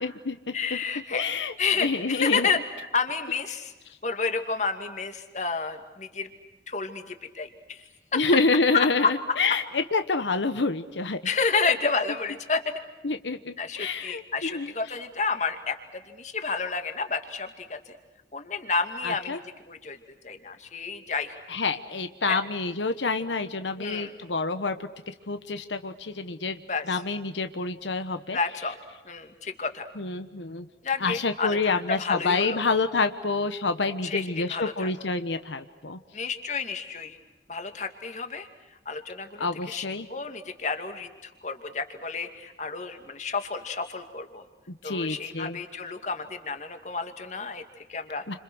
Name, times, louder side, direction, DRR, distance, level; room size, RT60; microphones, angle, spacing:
voice 1, 0.0-0.8 1.1-1.5 1.8-2.5 8.1-11.2 13.0-14.7 19.0-19.4 21.5-24.8 25.3-26.6 26.9-28.4 30.0-30.7 31.0-36.0 39.4-40.1 44.7-45.6 48.3-48.4, left 3 dB, 90° left, 9 dB, 1.2 m, -27 dB
voice 2, 0.5-1.3 1.6-2.6 2.9-3.7 4.0-6.3 6.7-7.8 8.1-8.2 8.7-9.1 11.2-12.7 13.6-15.8 16.1-17.9 18.3-19.4 19.7-20.0 20.2-21.4 22.3-22.4 23.8-24.1 26.7-27.0 28.3-28.8 29.0-29.9 30.8-32.6 34.0-34.9 36.1-37.2 37.5-38.5 38.9-44.4 44.8-48.2, left 4 dB, 40° left, 7 dB, 2.4 m, -30 dB
30.0 x 27.0 x 6.4 m, 1.1 s
head